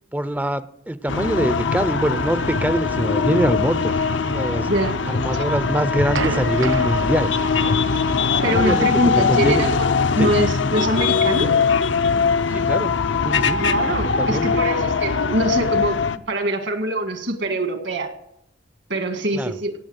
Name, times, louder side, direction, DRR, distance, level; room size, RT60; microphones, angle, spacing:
voice 1, 0.1-4.7 5.0-7.3 7.6-7.8 8.4-9.7 10.2-10.3 12.5-12.9 13.2-13.6 14.2-14.5 19.3-19.6, right 1 dB, 10° right, 13 dB, 0.5 m, -24 dB
sound 1, 1.1-16.2, left 5 dB, 75° left, 0.7 m, -21 dB
voice 2, 4.7-5.0 5.3-5.4 8.4-11.5 13.6-18.1 18.9-19.7, right 1 dB, 65° right, 7 dB, 2.0 m, -24 dB
sound 2, 5.4-10.3, right 3 dB, 90° right, 1.0 m, -32 dB
18.0 x 6.9 x 8.0 m, 0.77 s
head